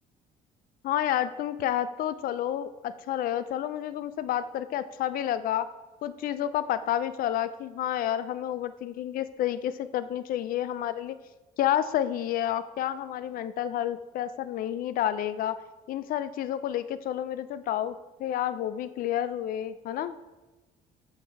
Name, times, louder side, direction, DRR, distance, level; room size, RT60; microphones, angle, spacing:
voice 1, 0.8-5.7 6.0-11.2 11.6-15.6 15.9-20.2, left 11 dB, 60° left, 14 dB, 0.4 m, -30 dB
7.2 x 6.6 x 4.5 m, 1.1 s
cardioid pair, 110°, 17 cm